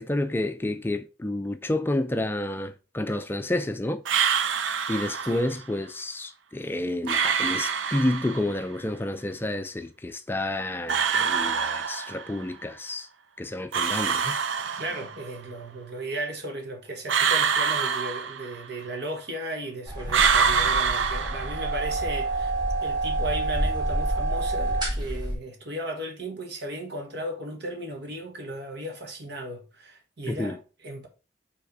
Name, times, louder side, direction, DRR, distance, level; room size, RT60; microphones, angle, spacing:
voice 1, 0.0-4.0 4.3-4.6 4.9-13.1 13.4-14.4 30.3-30.6, left 1 dB, 10° left, 0.4 m, -30 dB
sound 1, 4.1-5.5 7.1-8.6 10.9-12.4 13.7-15.3 17.1-18.8 20.1-21.9, right 6 dB, 85° right, 0.6 m, -25 dB
voice 2, 14.8-22.5 22.8-31.1, right 1 dB, 65° right, 1.7 m, -35 dB
sound 2, 19.9-25.3, right 2 dB, 25° right, 2.3 m, -28 dB
5.6 x 3.5 x 4.8 m
head